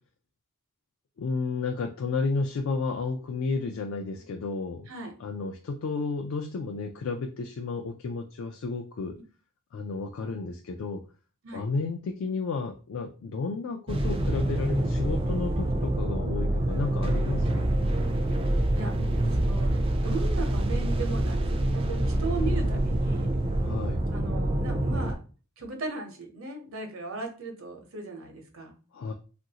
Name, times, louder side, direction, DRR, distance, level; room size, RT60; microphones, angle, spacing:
voice 1, 1.2-4.9 5.2-9.2 9.7-11.0 11.5-17.7 22.4-22.8 23.6-24.0 28.9-29.1, left 4 dB, 75° left, 5 dB, 0.3 m, -32 dB
sound 1, 13.9-25.1, right 1 dB, 25° right, 0.3 m, -26 dB
voice 2, 19.3-23.3 24.1-25.2 25.6-28.8, right 3 dB, 75° right, 3 dB, 0.8 m, -37 dB
3.0 x 2.5 x 2.8 m, 0.36 s
head